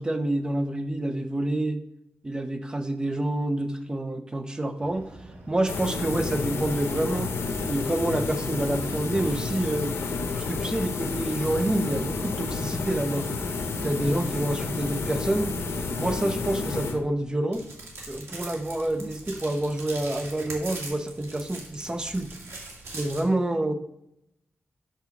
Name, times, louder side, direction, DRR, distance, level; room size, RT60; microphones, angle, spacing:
voice 1, 0.0-1.8 2.2-5.1 5.5-7.4 7.7-10.0 10.4-13.3 13.8-15.6 16.0-17.6 18.1-22.3 22.9-23.7, right 1 dB, 20° right, 8 dB, 0.6 m, -28 dB
sound 1, 4.8-10.0, right 1 dB, 60° right, 2.1 m, -47 dB
sound 2, 5.7-17.3, left 4 dB, 85° left, 0.8 m, -30 dB
sound 3, 17.5-23.2, right 2 dB, 75° right, 1.9 m, -41 dB
5.7 x 4.9 x 6.0 m, 0.81 s
wide cardioid pair, 125°, 4 cm